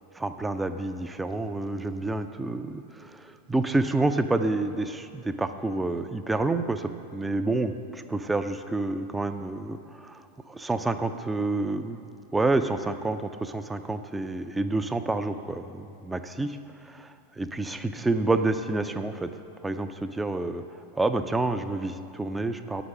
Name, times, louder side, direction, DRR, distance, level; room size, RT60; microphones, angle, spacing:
voice 1, 0.2-10.2 10.5-12.0 12.3-16.6 16.9-19.3 19.6-20.6 20.9-22.8, right 2 dB, 10° right, 8 dB, 0.4 m, -28 dB
9.5 x 6.1 x 7.6 m, 2.9 s
figure-of-eight pair, 90°, 0 cm